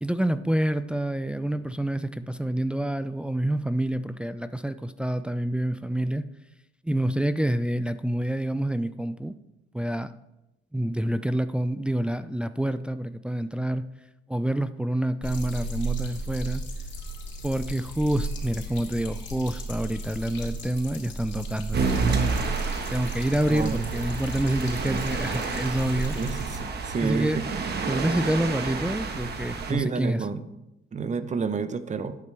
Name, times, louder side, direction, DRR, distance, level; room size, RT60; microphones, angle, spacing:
voice 1, 0.0-6.2 6.8-9.3 9.7-10.1 10.7-13.8 14.3-16.6 17.4-21.9 22.9-26.2 27.0-27.4 27.9-30.3, right 1 dB, 5° right, 11 dB, 0.4 m, -27 dB
sound 1, 15.2-26.6, right 2 dB, 65° left, 2.7 m, -34 dB
sound 2, 21.7-29.7, right 4 dB, 55° right, 1.4 m, -30 dB
voice 2, 23.5-23.9 26.0-26.6 26.8-27.4 29.7-30.5 30.9-32.2, right 5 dB, 35° right, 12 dB, 0.8 m, -29 dB
11.0 x 8.4 x 3.4 m, 0.90 s
cardioid pair, 90°, 20 cm